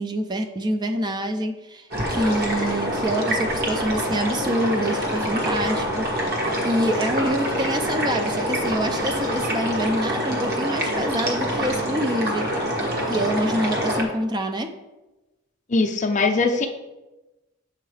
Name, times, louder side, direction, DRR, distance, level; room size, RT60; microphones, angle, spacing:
voice 1, 0.0-6.1 6.6-12.5 13.1-14.7, right 1 dB, 20° right, 6 dB, 0.4 m, -26 dB
sound 1, 1.9-14.1, equal, 50° right, 1.3 m, -25 dB
voice 2, 15.7-16.7, left 3 dB, 35° left, 5 dB, 0.5 m, -21 dB
7.8 x 4.6 x 3.2 m, 1.0 s
head